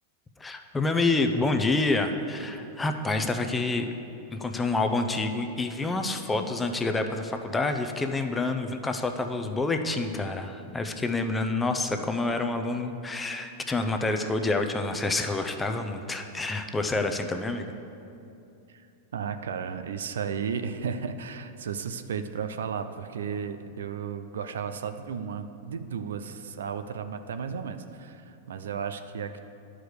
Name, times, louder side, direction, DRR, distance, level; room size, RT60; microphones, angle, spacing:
voice 1, 0.4-3.9 4.3-17.7, left 3 dB, 10° left, 6 dB, 0.7 m, -28 dB
voice 2, 19.1-29.4, right 6 dB, 85° right, 9 dB, 0.5 m, -34 dB
10.0 x 4.9 x 6.5 m, 2.7 s
hypercardioid pair, 120°, 0 cm